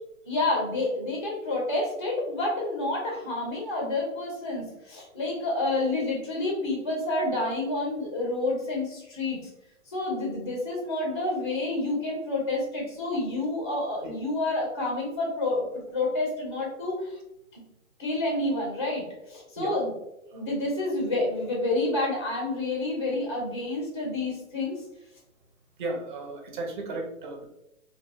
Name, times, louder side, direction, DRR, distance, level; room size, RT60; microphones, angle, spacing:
voice 1, 0.2-9.5 9.9-17.2 17.5-17.6 18.0-19.9 20.3-24.8, left 2 dB, 20° left, -2 dB, 0.3 m, -29 dB
voice 2, 25.8-27.5, right 2 dB, 35° right, 3 dB, 0.5 m, -35 dB
2.6 x 2.1 x 2.7 m, 0.84 s
hypercardioid pair, 145°, 42 cm